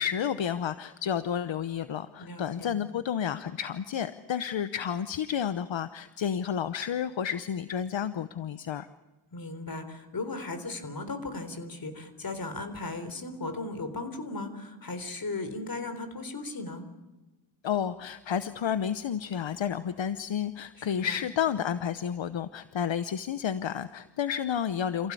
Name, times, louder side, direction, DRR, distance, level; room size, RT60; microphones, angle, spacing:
voice 1, 0.0-8.9 17.6-25.1, left 8 dB, 75° left, 12 dB, 0.9 m, -31 dB
voice 2, 2.2-2.8 9.3-16.8 20.8-21.2, left 2 dB, 50° left, 8 dB, 4.0 m, -37 dB
28.0 x 16.0 x 8.5 m, 1.1 s
wide cardioid pair, 95°, 46 cm